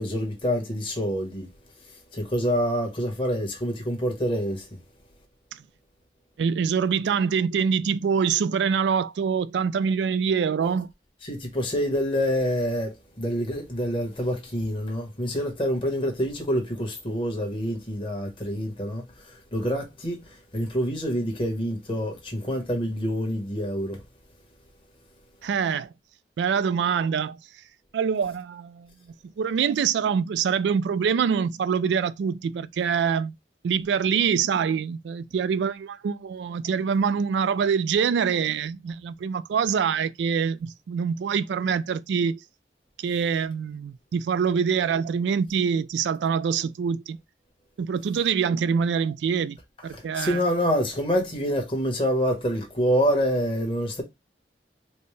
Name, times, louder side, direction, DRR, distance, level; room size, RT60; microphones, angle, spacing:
voice 1, 0.0-1.5 2.1-4.7 11.2-20.2 20.5-24.0 49.9-54.0, equal, 30° left, 1.1 m, -27 dB
voice 2, 6.4-10.9 25.4-25.9 26.4-27.4 27.9-28.9 29.2-33.3 33.6-42.4 43.0-47.2 47.8-49.6 49.8-50.4, right 6 dB, 85° right, 0.3 m, -25 dB
4.3 x 2.1 x 3.2 m
head